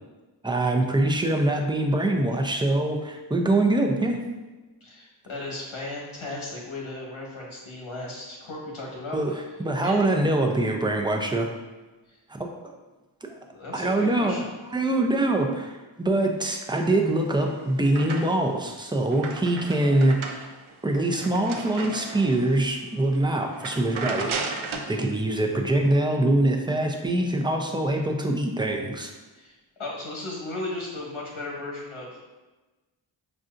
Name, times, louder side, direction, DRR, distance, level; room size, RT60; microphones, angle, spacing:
voice 1, 0.4-4.2 9.1-9.3 9.6-11.5 12.3-12.8 13.2-13.4 13.7-14.4 14.7-20.5 20.8-24.4 24.9-29.1, right 1 dB, 10° right, 2 dB, 0.5 m, -24 dB
voice 2, 4.8-9.2 9.8-10.1 12.1-12.2 13.5-14.5 29.3-29.5 29.8-32.2, left 2 dB, 75° left, -3 dB, 1.2 m, -36 dB
sound 1, 17.0-18.6 18.9-22.6 23.0-23.2 23.5-24.9, right 4 dB, 80° right, 0.6 m, -35 dB
5.4 x 2.5 x 2.5 m, 1.2 s
cardioid pair, 45°, 48 cm